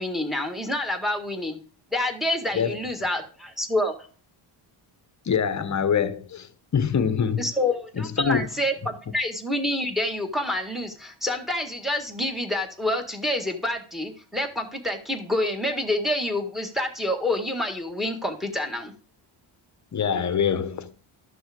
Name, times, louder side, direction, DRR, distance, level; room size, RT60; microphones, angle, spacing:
voice 1, 0.0-1.6 1.9-3.9 7.4-18.9, left 1 dB, ahead, 1.8 m, -27 dB
voice 2, 5.3-7.5 7.9-8.5 19.9-21.0, left 7 dB, 35° left, 1.0 m, -25 dB
13.0 x 6.2 x 5.1 m
cardioid pair, 130°, 49 cm